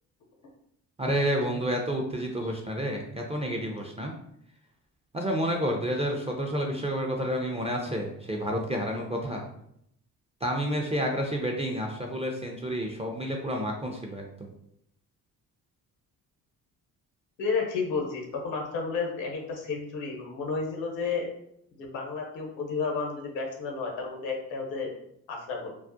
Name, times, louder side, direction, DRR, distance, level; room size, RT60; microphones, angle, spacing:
voice 1, 1.0-4.1 5.1-9.4 10.4-14.5, equal, 15° right, 1 dB, 0.3 m, -30 dB
voice 2, 17.4-21.3 21.8-24.9 25.3-25.7, left 4 dB, 75° left, 0 dB, 0.8 m, -32 dB
2.3 x 2.0 x 2.5 m, 0.73 s
hypercardioid pair, 45°, 45 cm